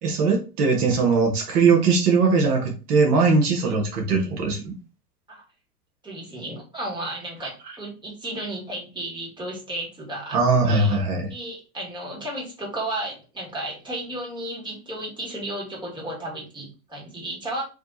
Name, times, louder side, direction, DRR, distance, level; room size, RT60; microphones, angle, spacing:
voice 1, 0.0-4.7 10.3-11.3, right 4 dB, 70° right, 2 dB, 1.4 m, -20 dB
voice 2, 6.0-10.4 10.7-11.0 11.3-17.6, right 1 dB, 10° right, -2 dB, 1.8 m, -33 dB
3.4 x 2.9 x 4.0 m, 0.32 s
hypercardioid pair, 110°, 47 cm